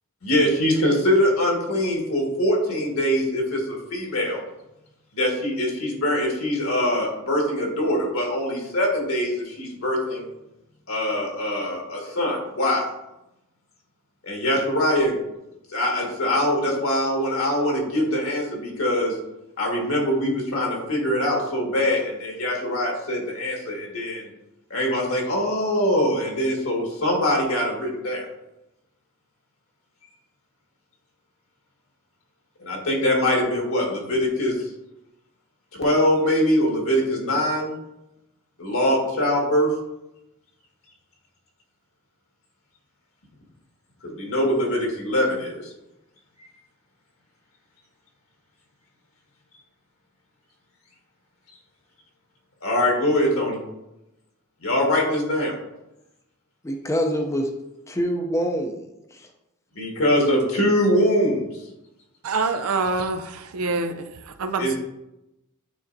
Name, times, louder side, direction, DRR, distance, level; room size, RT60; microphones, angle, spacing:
voice 1, 0.2-4.4 5.1-10.3 10.9-12.8 14.2-15.2 15.7-19.2 19.6-24.3 24.7-28.3 32.6-34.7 35.8-37.7 38.6-39.7 44.0-45.7 52.6-53.6 54.6-55.5 59.8-61.4 64.6-64.8, left 1 dB, 75° left, 1.8 m, -23 dB
voice 2, 56.6-57.5 57.9-58.9 59.1-59.3, equal, 15° left, 0.5 m, -25 dB
voice 3, 62.2-64.8, right 3 dB, 85° right, 0.5 m, -26 dB
9.0 x 4.1 x 2.7 m
head